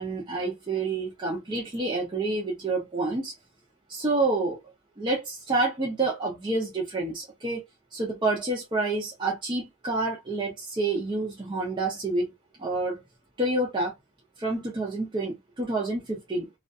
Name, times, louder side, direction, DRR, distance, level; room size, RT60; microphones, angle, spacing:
voice 1, 0.0-3.3 3.9-4.6 5.0-7.6 7.9-12.3 12.6-13.0 13.4-13.9 14.4-16.5, right 2 dB, 20° right, 0.5 m, -28 dB
2.4 x 2.2 x 2.5 m
head